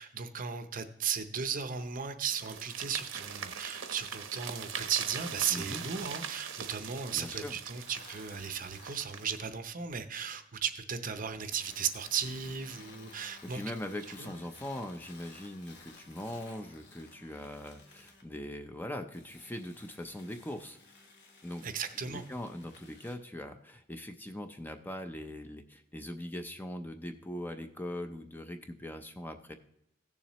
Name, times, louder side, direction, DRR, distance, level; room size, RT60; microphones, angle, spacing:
voice 1, 0.0-13.6 14.2-14.3 21.6-22.2, right 7 dB, 45° right, 9 dB, 0.7 m, -36 dB
sound 1, 2.3-9.5, right 7 dB, 75° right, 0.9 m, -42 dB
voice 2, 5.5-5.8 7.1-7.6 13.5-20.8 21.4-21.6 22.0-29.5, left 1 dB, 10° left, 6 dB, 0.5 m, -41 dB
sound 2, 7.8-9.4 11.5-18.3 19.1-23.2, left 3 dB, 55° left, 1.4 m, -55 dB
16.0 x 7.1 x 3.0 m, 0.79 s
head